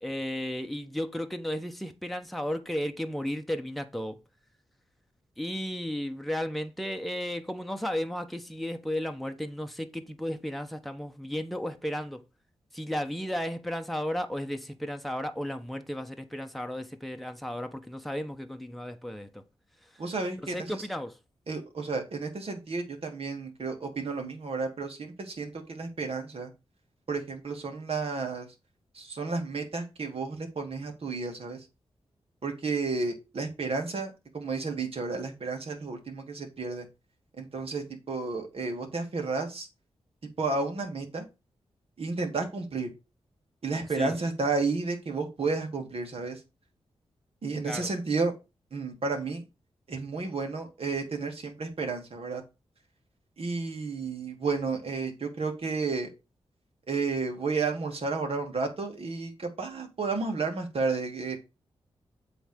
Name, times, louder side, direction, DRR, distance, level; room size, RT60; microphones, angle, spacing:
voice 1, 0.0-4.2 5.4-12.2 12.7-19.4 20.4-21.2 44.0-44.1 47.6-47.9, equal, ahead, 1.0 m, -34 dB
voice 2, 20.0-20.9 21.5-26.5 27.1-28.5 28.9-31.7 32.4-36.9 37.4-39.7 40.4-41.2 42.0-42.9 43.6-46.4 47.4-48.3 48.7-49.4 49.9-52.4 53.4-56.1 56.9-61.4, right 4 dB, 60° right, 2.3 m, -32 dB
7.9 x 3.5 x 6.5 m
cardioid pair, 60°, 11 cm